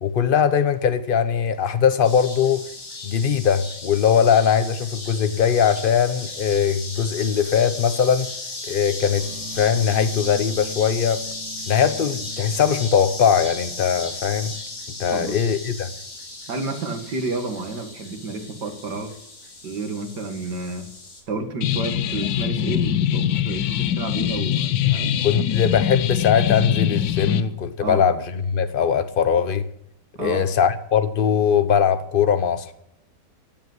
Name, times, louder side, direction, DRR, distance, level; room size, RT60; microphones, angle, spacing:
voice 1, 0.0-2.7 3.0-8.3 8.7-9.3 9.5-11.2 11.7-14.5 15.0-15.9 25.2-29.6 30.2-32.7, left 7 dB, 45° left, 0.8 m, -20 dB
sound 1, 2.0-21.2, left 2 dB, 60° left, 3.3 m, -36 dB
sound 2, 9.2-15.2, right 3 dB, 55° right, 4.5 m, -43 dB
voice 2, 16.5-19.1 19.6-20.9 21.3-25.2 27.8-28.0 30.1-30.4, right 3 dB, 75° right, 2.5 m, -30 dB
sound 3, 21.6-27.4, left 11 dB, 85° left, 1.4 m, -23 dB
14.5 x 8.0 x 9.6 m
omnidirectional pair, 1.8 m